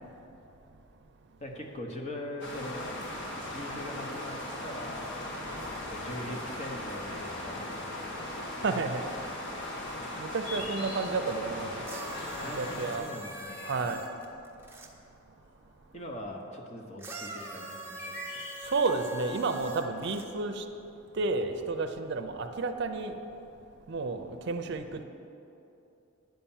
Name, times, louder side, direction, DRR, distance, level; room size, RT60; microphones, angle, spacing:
voice 1, 1.4-2.9 3.4-5.2 5.7-8.5 12.4-13.7 15.9-18.4, left 1 dB, 35° left, 1 dB, 1.0 m, -42 dB
sound 1, 2.4-13.0, left 1 dB, 60° left, 1.4 m, -38 dB
voice 2, 8.6-9.0 10.2-11.9 12.4-13.1 13.6-14.0 18.6-20.6 21.1-23.2 23.9-25.0, right 3 dB, 60° right, 7 dB, 0.6 m, -31 dB
sound 2, 10.4-11.6 12.9-14.2 15.4-16.1 17.1-19.2, left 2 dB, 85° left, 1.3 m, -43 dB
sound 3, 11.9-14.9 17.0-20.3 21.2-21.3, right 1 dB, 10° right, 0.8 m, -43 dB
9.4 x 5.7 x 7.2 m, 2.8 s
head